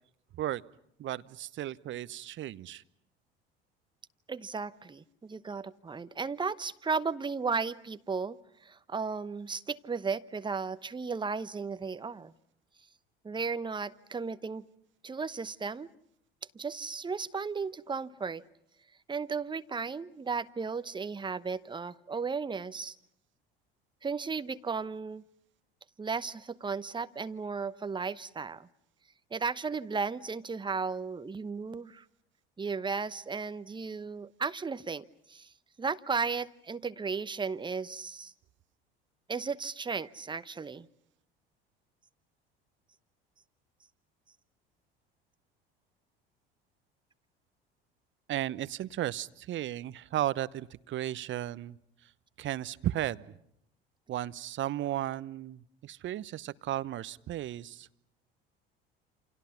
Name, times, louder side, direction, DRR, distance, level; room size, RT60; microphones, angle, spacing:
voice 1, 1.0-2.8 48.3-51.8 52.0-52.1 52.4-53.4 54.1-57.9, right 13 dB, 40° right, 17 dB, 0.9 m, -35 dB
voice 2, 4.3-12.3 13.2-14.6 15.0-15.9 16.5-18.4 19.1-22.9 24.0-25.2 26.0-28.7 29.3-32.0 32.6-35.5 35.8-38.3 39.3-40.9, right 5 dB, 15° right, 14 dB, 1.0 m, -35 dB
29.0 x 28.0 x 5.9 m, 0.75 s
figure-of-eight pair, 65°, 30 cm